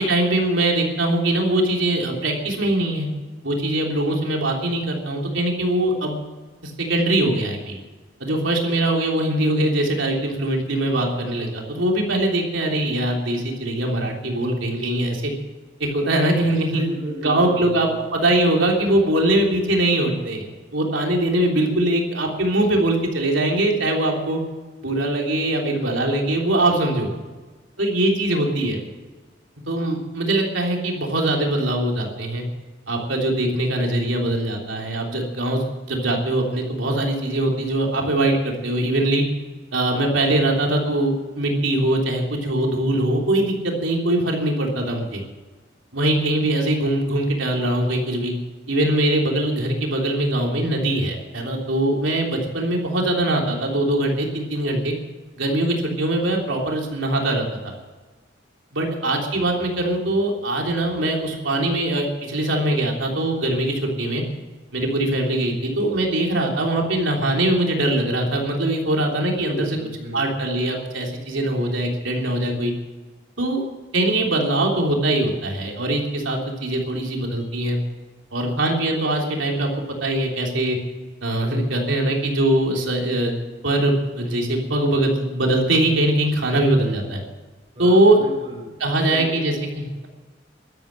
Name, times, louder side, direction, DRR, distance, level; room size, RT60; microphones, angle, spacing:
voice 1, 0.0-3.1 3.4-6.2 6.6-7.8 8.2-15.3 15.8-16.8 17.2-24.4 24.8-27.1 27.8-28.8 29.7-32.4 32.9-39.2 39.7-45.2 45.9-48.3 48.7-54.9 55.4-57.5 58.7-64.2 64.7-69.7 70.1-72.7 73.4-73.6 73.9-77.8 78.3-79.7 80.0-80.8 81.2-83.4 83.6-87.2 87.8-88.2 88.8-90.1, right 1 dB, 90° right, 0 dB, 3.5 m, -22 dB
voice 2, 16.7-18.0 69.5-70.4 87.7-89.6, equal, 30° right, -3 dB, 4.7 m, -34 dB
12.5 x 11.5 x 9.0 m, 1.3 s
head